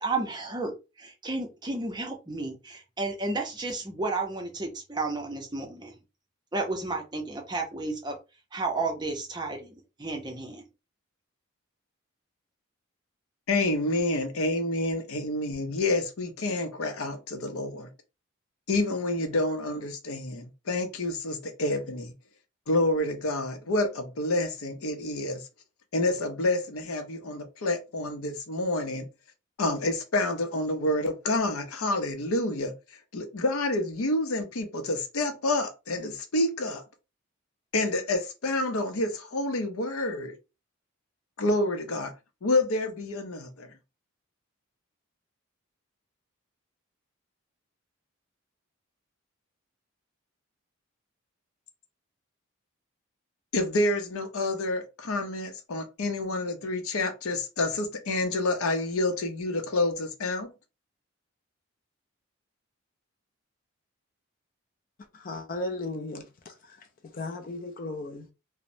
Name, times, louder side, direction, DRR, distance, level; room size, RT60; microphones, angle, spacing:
voice 1, 0.0-5.9 6.5-8.2 8.5-10.6, right 3 dB, 20° right, 0.6 m, -32 dB
voice 2, 13.5-17.9 18.7-22.1 22.7-25.4 25.9-29.0 29.6-32.7 33.1-36.8 37.7-40.3 41.4-42.1 42.4-43.7 53.5-60.5, left 2 dB, 80° left, 0.6 m, -28 dB
voice 3, 65.2-66.5 67.1-68.3, left 2 dB, 40° left, 0.4 m, -35 dB
3.0 x 2.0 x 2.6 m
head